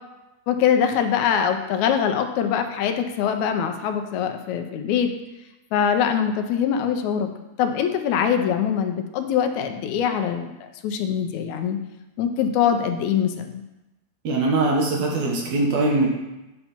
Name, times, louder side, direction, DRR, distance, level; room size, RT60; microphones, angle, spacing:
voice 1, 0.5-5.1 5.7-7.3 7.6-11.8 12.2-13.6, left 8 dB, 85° left, 6 dB, 2.1 m, -23 dB
voice 2, 14.2-16.1, right 2 dB, 70° right, -1 dB, 2.6 m, -21 dB
8.9 x 5.6 x 4.4 m, 1.0 s
omnidirectional pair, 3.3 m